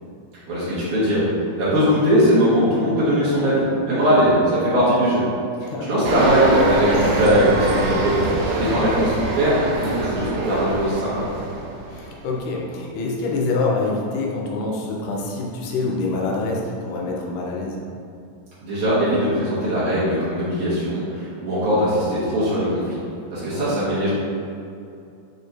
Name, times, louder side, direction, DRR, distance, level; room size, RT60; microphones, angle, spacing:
voice 1, 0.5-1.2 1.6-5.2 5.8-11.2 18.6-23.0 23.3-24.1, equal, 65° right, -10 dB, 2.7 m, -20 dB
voice 2, 5.7-6.1 11.9-17.8 23.5-23.8, left 3 dB, 70° left, -2 dB, 2.3 m, -26 dB
sound 1, 6.0-12.3, right 2 dB, 80° right, 2.5 m, -25 dB
9.6 x 4.0 x 3.1 m, 2.6 s
omnidirectional pair, 4.1 m